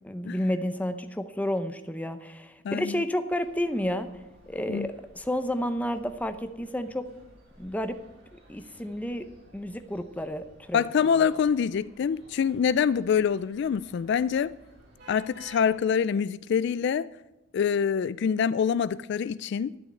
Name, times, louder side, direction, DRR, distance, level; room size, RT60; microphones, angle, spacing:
voice 1, 0.0-4.1 4.5-7.0 7.6-8.0 8.5-9.3 9.5-10.8, equal, 10° left, 0.7 m, -31 dB
voice 2, 2.6-3.0 4.7-4.9 10.7-14.6 15.1-17.1 17.5-19.7, left 7 dB, 60° left, 0.3 m, -25 dB
sound 1, 3.3-15.7, right 1 dB, 55° right, 4.6 m, -55 dB
11.5 x 6.4 x 9.2 m
head